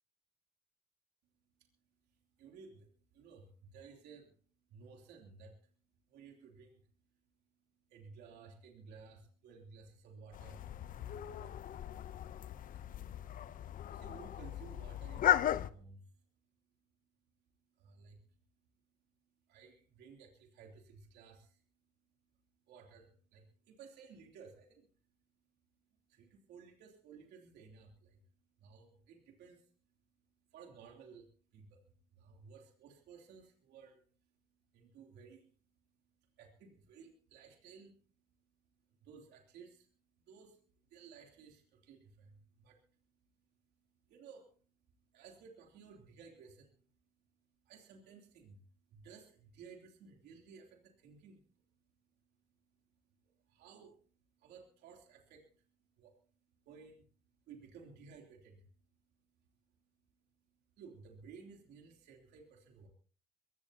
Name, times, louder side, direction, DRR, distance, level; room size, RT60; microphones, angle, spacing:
voice 1, 2.0-4.3 4.7-5.7 6.1-6.9 7.9-10.6 11.3-11.6 13.7-16.3 17.7-18.4 19.5-21.6 22.7-24.9 26.1-28.2 28.6-29.7 30.5-34.3 34.7-35.6 36.0-43.0 43.5-44.6 45.0-51.6 52.2-56.2 56.6-58.7 59.4-59.8 60.8-62.9, right 5 dB, 80° right, 1 dB, 3.1 m, -57 dB
sound 1, 10.3-15.7, left 12 dB, 55° left, 0.7 m, -36 dB
22.5 x 16.5 x 2.9 m, 0.42 s
cardioid pair, 110°, 17 cm